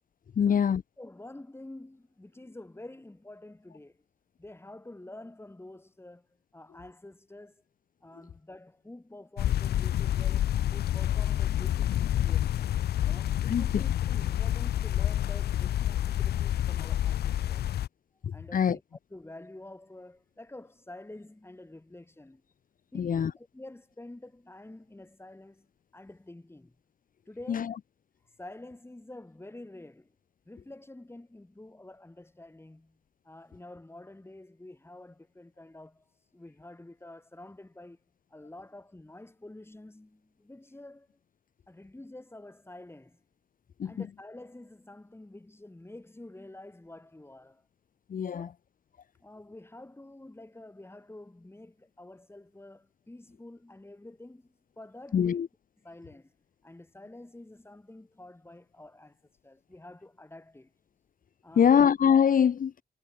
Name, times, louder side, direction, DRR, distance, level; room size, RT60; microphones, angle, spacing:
voice 1, 0.4-0.8 13.5-13.8 18.2-18.8 22.9-23.3 27.5-27.7 43.8-44.1 48.1-48.5 55.1-55.5 61.6-62.8, left 8 dB, 60° left, 1.0 m, -24 dB
voice 2, 1.0-4.0 4.4-6.3 6.5-7.6 8.0-12.7 13.0-17.7 18.3-18.8 19.1-22.4 22.9-25.7 25.9-26.8 27.3-27.7 28.4-30.1 30.5-33.0 33.2-38.0 38.3-41.2 41.7-43.2 43.8-47.6 48.3-48.5 49.2-55.4 55.8-56.3 56.6-59.2 59.4-60.7 61.4-61.8, left 2 dB, 15° left, 5.3 m, -48 dB
sound 1, 9.4-17.9, left 12 dB, 80° left, 0.5 m, -28 dB
cardioid pair, 75°, 16 cm